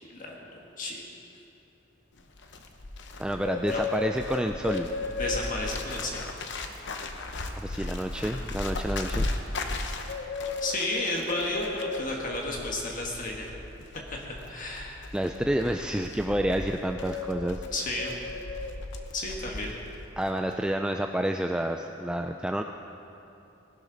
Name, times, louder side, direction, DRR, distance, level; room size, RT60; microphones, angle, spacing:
voice 1, 0.1-1.0 3.7-3.8 5.2-6.2 10.6-13.5 14.1-14.2 14.5-15.0 17.7-18.2 19.1-19.7, left 2 dB, 45° left, -1 dB, 1.5 m, -32 dB
Bird, 2.2-20.0 20.3-20.6, left 3 dB, 65° left, 0.9 m, -35 dB
voice 2, 3.2-4.9 7.5-9.3 15.1-17.6 20.2-22.6, right 1 dB, 5° right, 4 dB, 0.3 m, -29 dB
19.5 x 11.5 x 4.0 m, 2.9 s
head